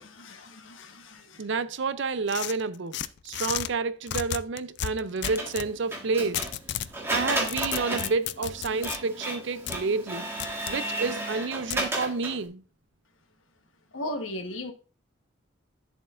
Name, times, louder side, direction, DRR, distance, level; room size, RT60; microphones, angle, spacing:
voice 1, 0.0-1.4 13.9-14.7, left 1 dB, 70° left, 1.2 m, -37 dB
voice 2, 1.4-3.0 3.2-6.5 7.1-10.3 10.7-12.6, right 4 dB, 60° right, 0.5 m, -29 dB
sound 1, 2.3-3.7 4.1-5.7 6.3-6.9 7.3-9.0 9.7-9.8 10.4-10.8 11.7-11.8, left 11 dB, 55° left, 0.3 m, -33 dB
Printer, 5.2-12.5, right 1 dB, 10° right, 1.5 m, -33 dB
11.0 x 7.2 x 2.5 m
head